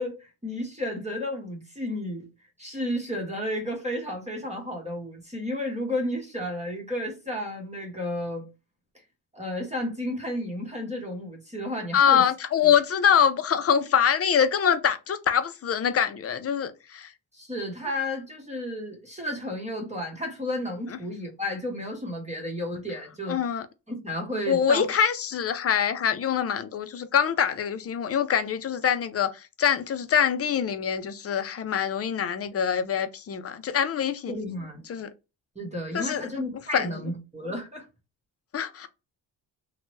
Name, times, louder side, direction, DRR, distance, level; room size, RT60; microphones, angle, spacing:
voice 1, 0.0-2.3 2.6-8.4 9.3-12.2 12.6-12.7 17.3-23.4 23.9-24.9 34.3-34.8 35.6-37.8, left 1 dB, 15° right, 0.9 m, -32 dB
voice 2, 11.9-17.1 23.3-23.7 24.5-29.3 29.6-34.3 34.9-35.1 35.9-36.2 36.7-36.9 38.5-38.9, left 8 dB, 35° left, 0.5 m, -24 dB
2.8 x 2.2 x 3.1 m
cardioid pair, 75°, 44 cm